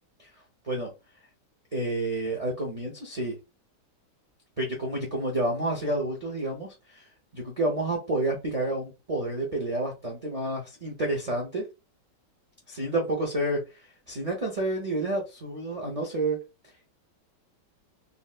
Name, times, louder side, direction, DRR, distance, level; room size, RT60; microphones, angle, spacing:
voice 1, 1.7-3.4 4.6-7.1 7.3-11.7 12.7-16.4, right 2 dB, 35° right, -2 dB, 0.6 m, -29 dB
4.0 x 2.1 x 2.4 m, 0.26 s
omnidirectional pair, 1.9 m